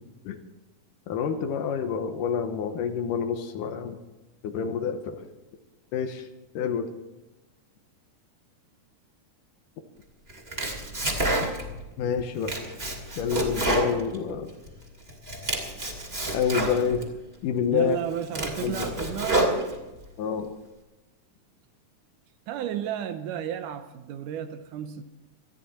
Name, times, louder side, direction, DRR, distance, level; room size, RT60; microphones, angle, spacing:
voice 1, 1.1-4.0 4.4-5.2 5.9-6.3 6.6-6.9 12.0-12.5 13.2-14.5 16.3-17.0 17.4-18.0 18.6-18.9 20.2-20.5, left 7 dB, 85° left, 6 dB, 2.6 m, -27 dB
Domestic sounds home sounds, 10.3-11.8 12.2-14.7 15.1-17.1 17.6-17.7 18.1-20.1, right 1 dB, 20° right, 2.5 m, -29 dB
voice 2, 17.7-19.5 22.5-25.0, right 10 dB, 80° right, 9 dB, 2.3 m, -32 dB
19.0 x 13.5 x 4.3 m, 1.1 s
omnidirectional pair, 3.7 m